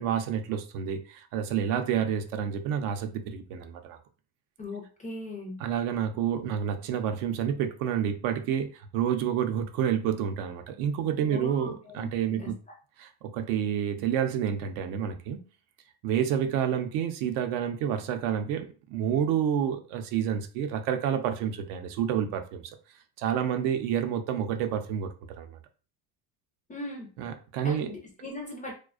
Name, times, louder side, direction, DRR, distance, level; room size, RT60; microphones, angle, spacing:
voice 1, 0.0-4.0 5.6-12.6 13.0-15.4 16.0-22.8 23.2-25.1 25.4-25.6 27.2-27.9, right 9 dB, 70° right, 7 dB, 0.6 m, -29 dB
voice 2, 4.6-5.6 11.3-12.5 26.7-27.1 27.6-28.7, left 2 dB, 20° left, 0 dB, 0.3 m, -39 dB
2.3 x 2.2 x 2.4 m, 0.37 s
supercardioid pair, 105°, 49 cm